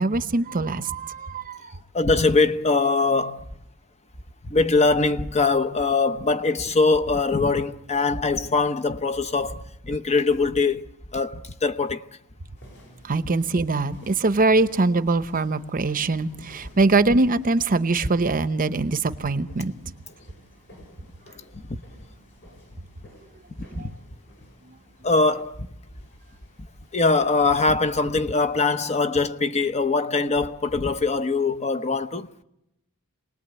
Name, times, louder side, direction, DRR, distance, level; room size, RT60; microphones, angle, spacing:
voice 1, 0.0-1.7 13.0-19.9 23.8-23.9, right 3 dB, 40° right, 0.8 m, -23 dB
voice 2, 1.9-3.5 4.4-10.8 11.1-12.0 21.5-21.8 23.7-23.9 25.0-25.7 26.9-32.3, left 3 dB, 30° left, 0.8 m, -22 dB
sound 1, 12.5-28.7, equal, 55° left, 7.3 m, -52 dB
27.5 x 19.5 x 8.2 m
head